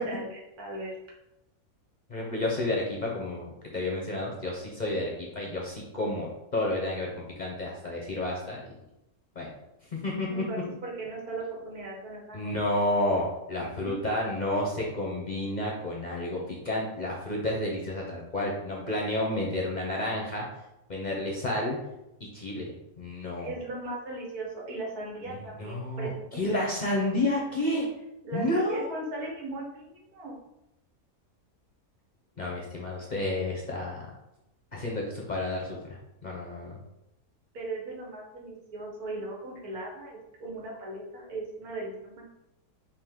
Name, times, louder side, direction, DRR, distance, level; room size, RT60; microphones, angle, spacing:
voice 1, 0.6-0.9 10.3-12.5 13.6-14.0 23.4-26.4 28.2-30.4 37.5-42.4, right 2 dB, 90° right, -3 dB, 1.7 m, -38 dB
voice 2, 2.1-8.6 9.4-9.5 9.9-10.4 12.3-20.4 20.9-21.8 22.3-22.7 23.0-23.5 25.3-27.9 28.3-28.9 32.4-34.1 34.7-36.8, left 1 dB, 45° left, -2 dB, 0.6 m, -30 dB
5.1 x 2.5 x 3.7 m, 0.89 s
omnidirectional pair, 1.5 m